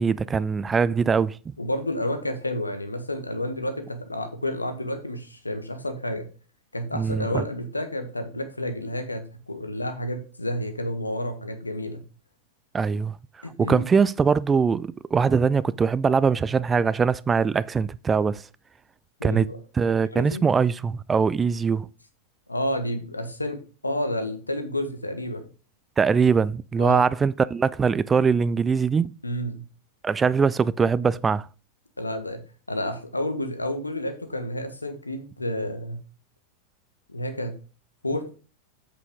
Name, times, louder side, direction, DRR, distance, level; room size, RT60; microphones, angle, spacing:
voice 1, 0.0-1.4 6.9-7.4 12.7-13.2 13.6-18.4 19.2-19.5 19.7-21.9 26.0-29.1 30.0-31.5, right 5 dB, 15° right, 0.3 m, -22 dB
voice 2, 1.6-6.3 6.7-12.0 13.4-13.9 19.2-19.6 20.1-20.4 22.5-23.6 23.8-25.5 26.8-27.1 29.2-29.6 32.0-32.4 32.7-36.0 37.1-37.5 38.0-38.3, left 1 dB, 80° left, 1.4 m, -30 dB
8.2 x 6.9 x 3.7 m
figure-of-eight pair, 90°, 0 cm